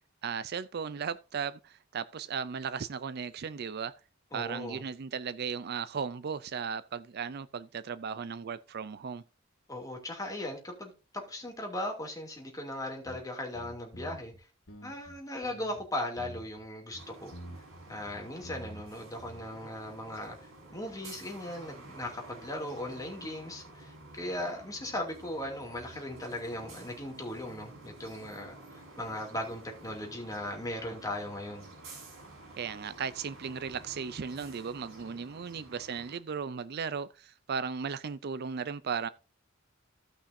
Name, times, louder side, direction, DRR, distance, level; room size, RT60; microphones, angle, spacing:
voice 1, 0.2-3.9 4.3-9.2 32.6-39.1, right 6 dB, 50° right, 0.5 m, -36 dB
voice 2, 4.3-4.8 9.7-14.3 14.8-17.3 17.9-20.3 20.7-31.7, left 1 dB, 20° left, 2.7 m, -38 dB
sound 1, 13.0-13.2 13.5-14.4 14.7-15.8 16.2-16.6 16.9-18.9 19.2-19.4, right 1 dB, 75° left, 2.2 m, -47 dB
sound 2, 17.0-36.2, right 2 dB, 90° right, 5.1 m, -51 dB
16.0 x 5.8 x 2.7 m
head